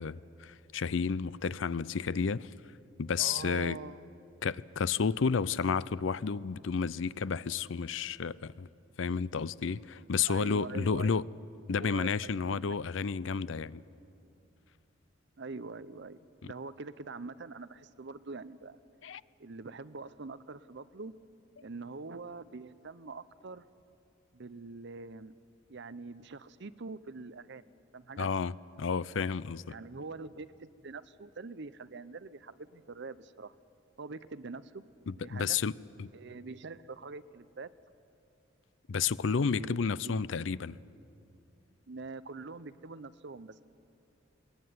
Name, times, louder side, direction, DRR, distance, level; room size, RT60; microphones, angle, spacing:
voice 1, 0.0-2.5 3.0-3.8 4.4-8.7 9.0-11.2 11.7-13.8 16.4-16.5 19.0-19.2 28.2-28.5 28.8-29.7 35.1-35.7 36.0-36.1 38.9-40.8, left 5 dB, 70° left, 19 dB, 0.5 m, -31 dB
voice 2, 3.2-4.1 10.3-11.2 11.8-12.7 15.4-16.2 16.4-18.8 19.4-21.1 21.6-23.6 24.3-25.3 25.7-28.3 29.7-33.6 34.0-34.8 35.2-35.6 36.1-37.7 39.5-40.2 41.9-43.6, right 3 dB, 60° right, 14 dB, 0.7 m, -44 dB
21.5 x 20.0 x 9.5 m, 2.6 s
head